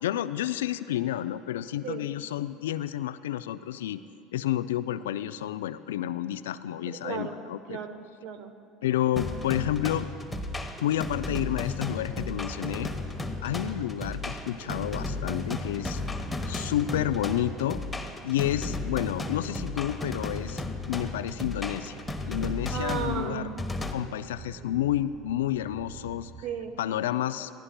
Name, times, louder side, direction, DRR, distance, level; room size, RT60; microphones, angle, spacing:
voice 1, 0.0-4.0 4.3-7.8 8.8-10.1 10.8-12.9 13.4-16.0 16.5-17.8 18.2-23.5 23.9-26.3 26.8-27.5, left 12 dB, 80° left, 14 dB, 0.3 m, -30 dB
voice 2, 6.9-7.4 7.7-8.5 22.7-23.5 26.4-26.8, right 7 dB, 60° right, 9 dB, 0.9 m, -35 dB
sound 1, 9.2-23.9, left 2 dB, 10° left, 1.1 m, -34 dB
sound 2, 10.1-26.8, right 5 dB, 35° right, 0.8 m, -46 dB
22.0 x 15.0 x 2.2 m, 2.5 s
hypercardioid pair, 75°, 0 cm